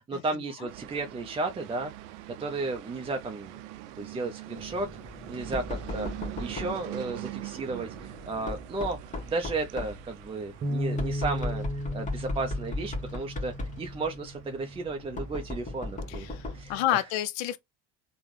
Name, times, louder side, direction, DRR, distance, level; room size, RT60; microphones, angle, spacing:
voice 1, 0.0-1.9 2.3-3.6 4.0-4.9 5.3-6.1 6.4-17.0, right 3 dB, 15° right, 0.5 m, -34 dB
sound 1, 0.7-16.6, right 16 dB, 70° right, 0.5 m, -44 dB
Knock, 4.6-16.8, left 2 dB, 20° left, 1.1 m, -38 dB
Bass guitar, 10.6-15.0 15.7-16.8, equal, 35° right, 0.8 m, -36 dB
voice 2, 16.1-17.6, left 13 dB, 60° left, 0.5 m, -29 dB
3.4 x 2.2 x 3.1 m
hypercardioid pair, 70°, 36 cm